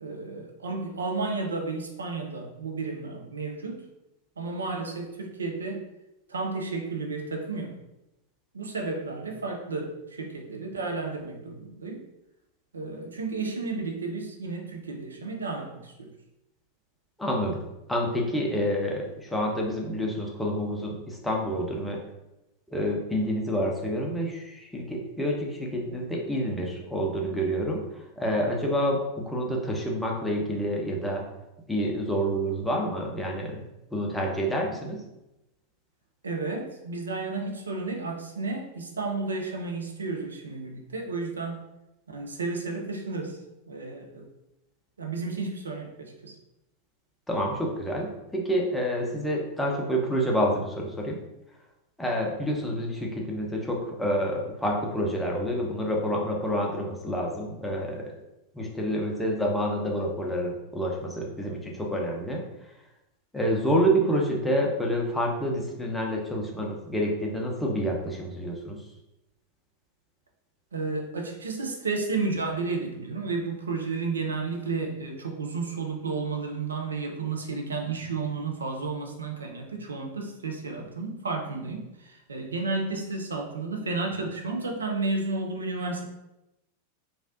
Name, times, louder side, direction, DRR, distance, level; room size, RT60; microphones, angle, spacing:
voice 1, 0.0-3.8 4.4-5.8 6.3-7.8 8.5-12.0 12.7-16.1 36.2-41.6 42.1-43.4 43.7-44.3 45.0-46.3 70.7-86.0, right 3 dB, 70° right, 2 dB, 0.4 m, -32 dB
voice 2, 17.2-17.6 17.9-22.0 22.7-31.2 31.7-33.6 33.9-35.0 47.3-51.2 52.0-58.1 58.5-62.4 63.3-68.8, equal, 5° left, -1 dB, 0.6 m, -28 dB
3.2 x 2.4 x 2.6 m, 0.93 s
figure-of-eight pair, 90°, 0 cm